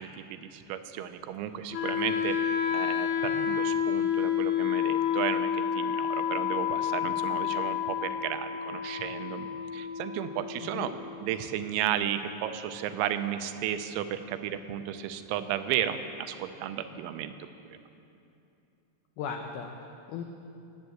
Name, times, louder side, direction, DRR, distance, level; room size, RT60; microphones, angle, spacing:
voice 1, 0.0-9.5 9.7-10.9 11.2-17.3, right 10 dB, 85° right, 9 dB, 3.0 m, -34 dB
Wind instrument woodwind instrument, 1.7-11.7, left 8 dB, 70° left, 2.8 m, -30 dB
voice 2, 10.6-10.9 19.2-20.2, left 6 dB, 90° left, 4 dB, 2.1 m, -37 dB
18.5 x 8.2 x 7.8 m, 2.7 s
omnidirectional pair, 5.4 m